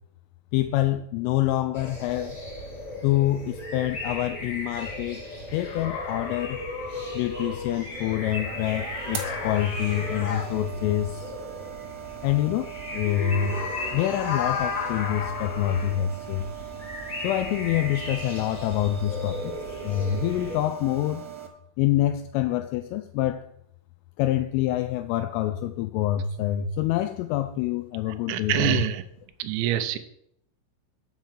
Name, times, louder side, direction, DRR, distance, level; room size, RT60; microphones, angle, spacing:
voice 1, 0.5-2.4 3.0-5.3 5.5-6.6 7.1-11.3 12.2-13.6 13.9-16.5 17.2-19.5 19.8-21.3 21.8-23.5 24.2-28.8, left 13 dB, 85° left, 3.1 m, -26 dB
sound 1, 1.7-20.6, left 1 dB, 20° left, 1.0 m, -38 dB
sound 2, 5.5-7.9 8.9-10.5 13.0-15.9, left 5 dB, 65° left, 2.5 m, -34 dB
sound 3, 7.9-21.5, right 9 dB, 70° right, 3.1 m, -40 dB
voice 2, 28.1-29.0 29.4-30.0, right 13 dB, 90° right, 2.5 m, -26 dB
7.6 x 5.7 x 7.3 m
omnidirectional pair, 5.8 m